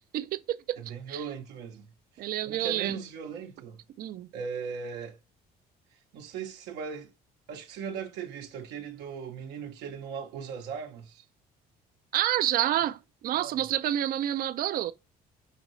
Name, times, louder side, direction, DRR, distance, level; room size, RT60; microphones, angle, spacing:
voice 1, 0.0-0.8 1.1-1.2 2.2-3.0 4.0-4.3 12.1-14.9, right 12 dB, 60° right, 0.4 m, -29 dB
voice 2, 0.8-1.9 2.4-3.8 4.3-5.2 6.1-7.1 7.5-11.2 13.4-13.5, right 6 dB, 90° right, 0.9 m, -38 dB
5.1 x 2.7 x 3.1 m
cardioid pair, 110°, 17 cm